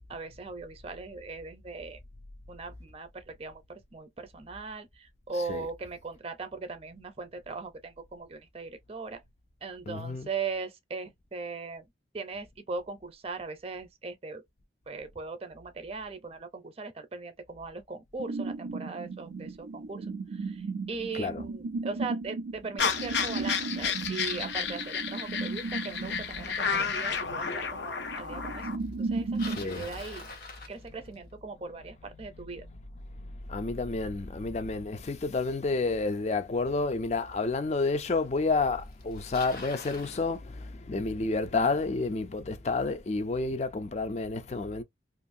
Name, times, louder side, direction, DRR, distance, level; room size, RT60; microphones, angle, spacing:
voice 1, 0.0-2.0 2.5-9.2 9.6-11.8 12.1-14.4 14.9-20.1 20.3-28.7 29.0-30.3 30.7-32.7, right 4 dB, 35° right, 0.6 m, -39 dB
voice 2, 9.9-10.3 21.1-21.4 28.4-28.8 29.4-30.0 32.2-32.8 33.2-44.8, left 3 dB, 40° left, 0.4 m, -30 dB
sound 1, 18.2-29.6, right 3 dB, 85° right, 0.4 m, -36 dB
sound 2, 22.8-28.8, left 6 dB, 75° left, 0.7 m, -32 dB
Bicycle, 29.0-31.4 36.4-36.5 37.4-37.5 38.5-38.6 38.8-40.2, left 3 dB, 55° left, 0.9 m, -44 dB
2.6 x 2.5 x 2.6 m
head